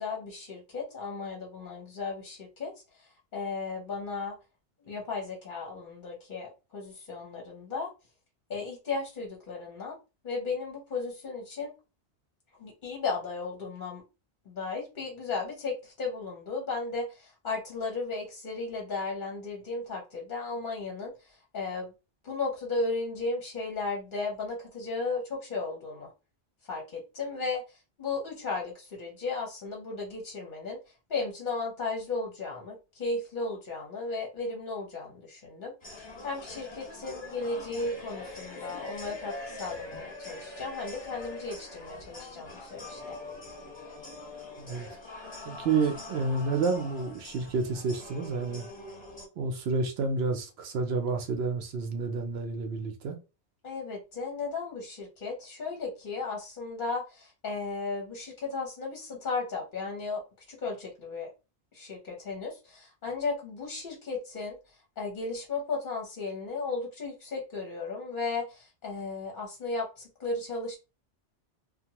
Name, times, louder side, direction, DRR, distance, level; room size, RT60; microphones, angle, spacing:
voice 1, 0.0-4.4 4.8-7.9 8.5-10.0 10.2-11.7 12.6-14.0 14.5-21.9 22.2-26.1 26.6-30.8 31.1-43.2 53.6-60.2 60.5-61.3 61.7-70.8, left 3 dB, 50° left, 0.8 m, -35 dB
sound 1, 35.8-49.3, left 2 dB, 25° left, 1.1 m, -43 dB
voice 2, 44.6-44.9 45.4-48.7 49.4-53.2, right 4 dB, 65° right, 0.8 m, -30 dB
2.7 x 2.2 x 2.9 m
omnidirectional pair, 1.2 m